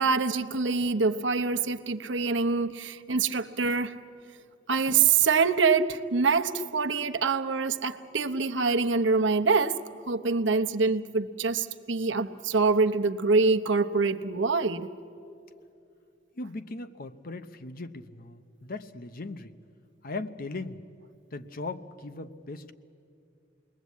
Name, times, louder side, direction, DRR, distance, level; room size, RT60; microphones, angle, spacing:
voice 1, 0.0-3.9 4.7-9.8 10.1-14.9, right 4 dB, 70° right, 0.9 m, -25 dB
voice 2, 16.4-19.5 20.0-20.8 21.3-22.7, left 3 dB, 50° left, 0.9 m, -38 dB
28.5 x 21.0 x 8.4 m
head